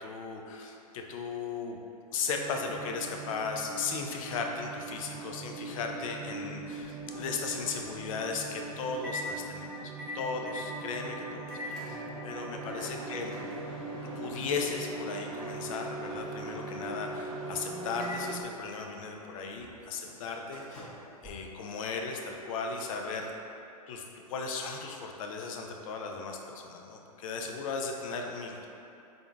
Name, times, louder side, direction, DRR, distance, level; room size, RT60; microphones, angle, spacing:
voice 1, 0.0-1.8 2.1-13.4 14.2-20.9 21.2-23.3 23.9-28.7, left 4 dB, 60° left, 2 dB, 0.5 m, -36 dB
sound 1, 2.3-18.4, right 4 dB, 45° right, 0.4 m, -42 dB
Microwave oven, 6.4-22.1, left 1 dB, 5° left, 1.0 m, -43 dB
3.7 x 3.5 x 2.3 m, 2.8 s
hypercardioid pair, 110°, 20 cm